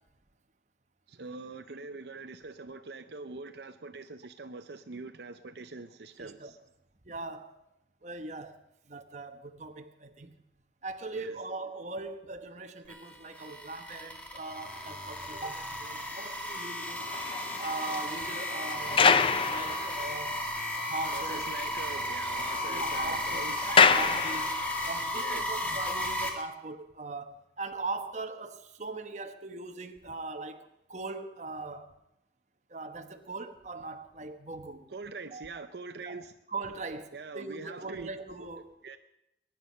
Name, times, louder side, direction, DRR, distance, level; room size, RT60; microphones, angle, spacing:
voice 1, 1.1-6.6 11.1-11.4 21.1-23.7 25.2-25.4 34.9-36.3 37.1-38.1 38.8-39.0, right 3 dB, 70° right, 0.6 m, -43 dB
voice 2, 6.2-6.5 7.0-7.6 8.0-8.6 8.9-10.4 10.8-17.1 17.6-19.1 19.5-20.5 20.7-21.4 22.7-24.6 24.9-31.9 32.7-34.9 35.3-35.6 36.0-38.7, right 3 dB, 40° right, 1.1 m, -40 dB
sound 1, 12.9-26.3, left 1 dB, 10° left, 1.9 m, -34 dB
sound 2, 16.8-20.5 20.8-20.9 21.3-21.4 21.7-24.9 25.6-25.8, left 5 dB, 30° left, 0.5 m, -28 dB
22.0 x 10.5 x 5.5 m
head